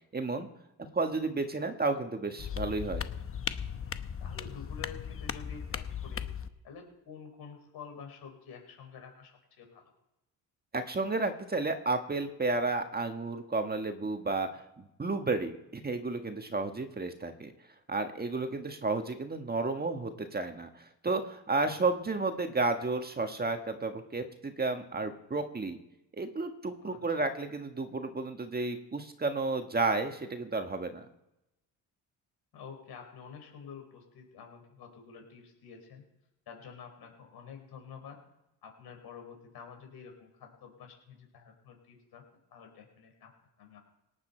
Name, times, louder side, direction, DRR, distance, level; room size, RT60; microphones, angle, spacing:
voice 1, 0.1-0.5 0.8-3.0 10.7-14.6 15.0-17.5 17.9-25.8 26.1-31.1, right 3 dB, 25° right, 6 dB, 1.5 m, -32 dB
sound 1, 2.4-6.5, left 8 dB, 35° left, 0.9 m, -37 dB
voice 2, 4.2-6.3 6.6-9.9 21.6-21.8 26.8-27.2 32.5-36.0 36.5-38.2 38.6-42.2 42.5-43.3 43.6-43.8, left 6 dB, 65° left, 3 dB, 5.0 m, -49 dB
18.0 x 9.7 x 4.5 m, 0.89 s
supercardioid pair, 75°, 41 cm